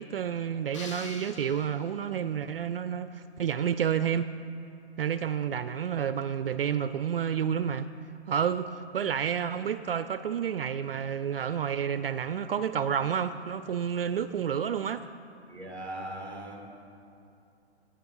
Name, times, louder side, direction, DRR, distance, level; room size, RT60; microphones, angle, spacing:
voice 1, 0.0-4.3 5.0-7.9 8.3-15.1, right 8 dB, 55° right, 12 dB, 0.4 m, -30 dB
sound 1, 0.7-2.3, left 3 dB, 30° left, 0.7 m, -45 dB
voice 2, 15.5-16.7, right 1 dB, 5° left, 2 dB, 1.2 m, -39 dB
14.5 x 10.0 x 5.5 m, 2.6 s
hypercardioid pair, 165°, 34 cm